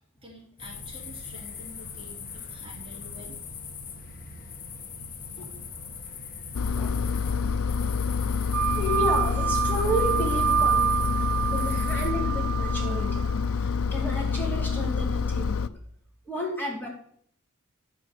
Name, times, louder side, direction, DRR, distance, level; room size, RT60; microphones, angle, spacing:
voice 1, 0.2-3.4, left 1 dB, 25° right, -2 dB, 3.1 m, -48 dB
sound 1, 0.6-12.1, left 5 dB, 40° left, 1.5 m, -41 dB
Engine, 6.5-15.7, left 5 dB, 80° left, 0.6 m, -27 dB
sound 2, 8.5-13.4, right 8 dB, 75° right, 0.4 m, -27 dB
voice 2, 8.7-10.9 11.5-13.2 13.5-15.7 16.2-16.9, equal, 10° left, -2 dB, 3.1 m, -31 dB
11.5 x 6.1 x 7.9 m, 0.62 s
head